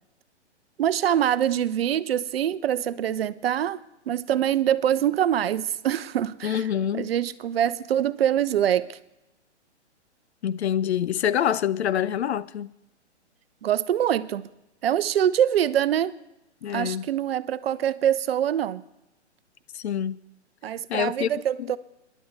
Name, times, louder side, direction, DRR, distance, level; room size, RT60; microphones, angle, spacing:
voice 1, 0.8-3.8 4.1-6.6 6.9-9.0 13.6-14.5 14.8-16.1 16.7-18.8 20.6-21.8, right 10 dB, 55° right, 0.7 m, -24 dB
voice 2, 6.4-7.1 10.4-12.7 16.6-17.1 19.7-20.2 20.9-21.7, left 9 dB, 65° left, 0.6 m, -26 dB
25.0 x 11.0 x 4.1 m
hypercardioid pair, 130°, 35 cm